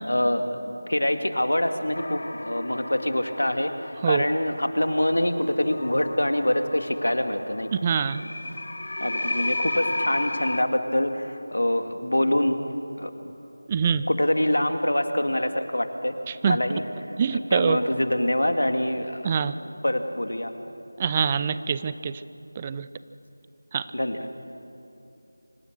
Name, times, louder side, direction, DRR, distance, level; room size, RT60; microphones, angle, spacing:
voice 1, 0.1-3.7 4.1-7.7 9.0-12.6 13.0-13.1 14.1-16.1 16.4-16.8 17.3-19.3 19.8-20.5 23.9-24.2, left 1 dB, 90° left, 7 dB, 2.0 m, -25 dB
sound 1, 1.9-10.6, left 1 dB, 65° left, 1.4 m, -33 dB
voice 2, 7.8-8.2 13.7-14.0 16.3-16.6 17.2-17.8 19.2-19.5 21.0-22.2 22.6-22.9 23.7-23.9, right 6 dB, 20° right, 14 dB, 0.4 m, -24 dB
25.5 x 17.0 x 6.6 m, 2.8 s
figure-of-eight pair, 170°, 0 cm